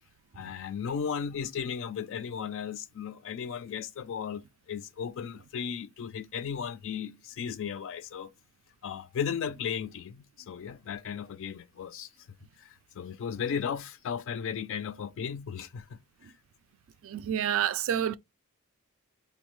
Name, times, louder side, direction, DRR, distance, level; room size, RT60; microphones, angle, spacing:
voice 1, 0.4-4.4 4.7-8.3 8.8-12.1 12.6-12.7 13.0-16.0, left 7 dB, 60° left, 0.3 m, -35 dB
voice 2, 17.0-18.2, right 9 dB, 65° right, 0.3 m, -28 dB
5.1 x 2.1 x 3.0 m
head